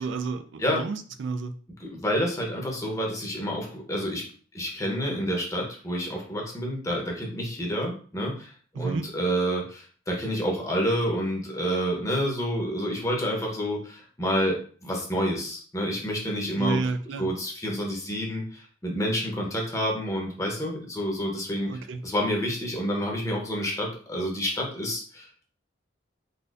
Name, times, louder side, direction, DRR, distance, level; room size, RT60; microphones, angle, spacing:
voice 1, 0.0-1.5 8.7-9.1 16.6-17.3 21.7-22.0, right 4 dB, 75° right, 10 dB, 0.4 m, -31 dB
voice 2, 1.8-4.2 4.5-16.8 17.2-21.7 22.0-25.3, equal, 15° left, -1 dB, 0.9 m, -29 dB
4.1 x 2.6 x 2.5 m, 0.43 s
head